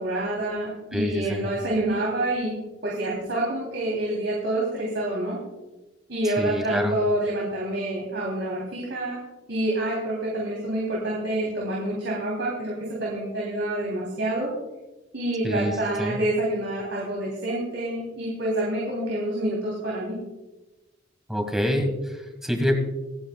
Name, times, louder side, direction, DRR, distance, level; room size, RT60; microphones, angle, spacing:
voice 1, 0.0-2.5 2.8-5.4 6.1-9.2 9.5-12.7 13.0-14.5 15.1-20.2, right 1 dB, 65° right, -4 dB, 3.4 m, -27 dB
voice 2, 0.9-1.5 6.2-7.0 15.4-16.2 21.3-22.8, equal, ahead, 4 dB, 1.7 m, -26 dB
26.0 x 8.9 x 2.4 m, 1.1 s
head